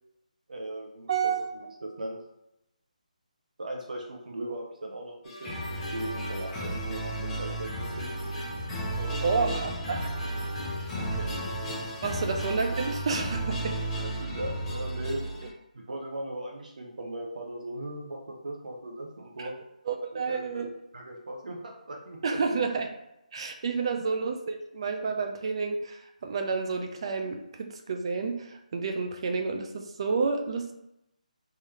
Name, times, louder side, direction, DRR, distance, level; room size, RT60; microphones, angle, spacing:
voice 1, 0.5-1.3 1.8-2.2 3.6-7.1 7.4-8.1 9.0-9.6 11.0-11.3 13.7-15.2 15.7-19.5 20.3-20.7 20.9-22.4, right 1 dB, 70° right, 0 dB, 0.8 m, -38 dB
voice 2, 1.1-1.7 9.2-10.1 12.0-13.8 19.4-19.5 19.9-20.7 22.2-22.9 23.3-30.7, right 4 dB, 40° right, 4 dB, 0.4 m, -30 dB
sound 1, 5.2-15.5, right 1 dB, 10° left, 0.8 m, -33 dB
3.8 x 2.7 x 3.2 m, 0.85 s
figure-of-eight pair, 160°, 4 cm